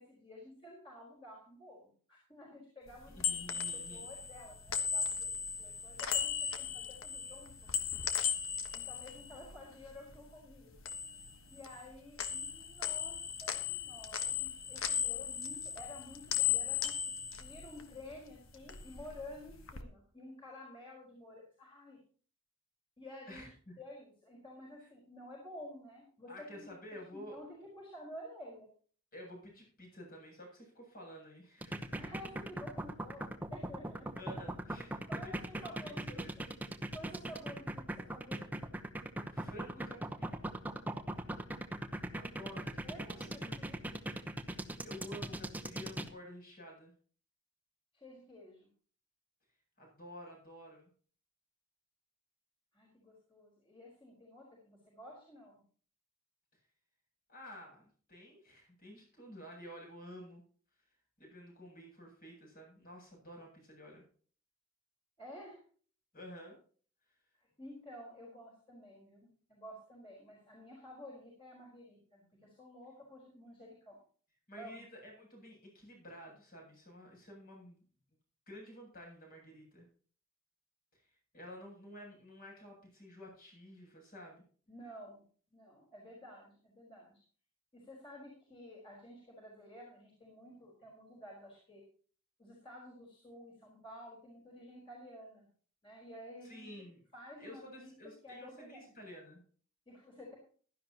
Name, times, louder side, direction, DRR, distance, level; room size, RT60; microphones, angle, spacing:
voice 1, 0.0-7.5 8.7-10.7 11.5-22.0 23.0-23.5 23.8-26.7 27.1-28.7 31.9-34.1 35.1-36.5 36.9-38.7 42.8-43.9 47.9-48.7 52.7-55.6 65.2-65.6 67.6-74.0 74.6-74.8 84.7-85.2 85.5-87.2 87.7-91.8 92.4-95.5 95.8-96.7 97.1-98.9 99.9-100.3, left 1 dB, 25° left, -4 dB, 4.6 m, -52 dB
sound 1, 2.9-10.2 10.5-11.9 12.2-18.2 18.5-19.8, left 8 dB, 90° left, 1.4 m, -37 dB
voice 2, 3.1-4.1 23.3-23.8 24.8-24.9 26.3-27.4 29.1-32.1 34.2-36.4 39.3-40.4 42.1-43.5 43.9-44.0 44.5-46.9 49.8-50.9 57.3-60.4 61.2-64.0 66.1-66.6 74.5-77.8 78.5-79.9 81.0-84.4 96.4-97.0 97.4-99.4, equal, 45° left, 0 dB, 8.0 m, -51 dB
sound 2, 31.6-46.1, right 1 dB, 10° right, 0.9 m, -39 dB
16.0 x 12.5 x 3.0 m, 0.44 s
head